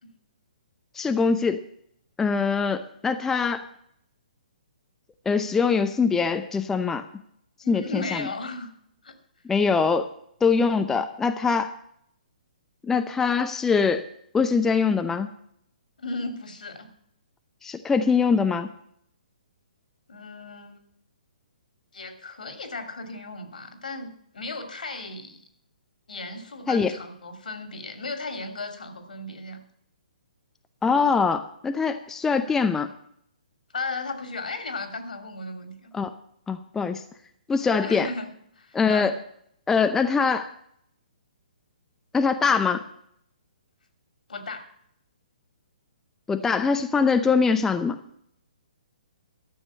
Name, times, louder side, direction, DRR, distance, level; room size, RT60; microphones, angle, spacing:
voice 1, 1.0-1.6 2.2-3.7 5.3-7.0 7.7-8.3 9.5-10.1 10.4-11.7 12.9-14.1 14.3-15.3 17.6-18.7 26.7-26.9 30.8-32.9 35.9-36.1 36.5-37.0 37.5-38.1 38.7-39.1 39.7-40.5 42.1-42.8 46.3-48.0, left 5 dB, 10° left, 8 dB, 0.6 m, -23 dB
voice 2, 7.6-8.7 9.0-9.1 16.0-16.9 20.1-20.8 21.9-25.4 26.1-29.6 33.7-35.9 37.8-38.3 38.6-39.1 44.3-44.7, left 3 dB, 70° left, 7 dB, 2.5 m, -35 dB
13.0 x 7.2 x 7.9 m, 0.69 s
figure-of-eight pair, 130°, 5 cm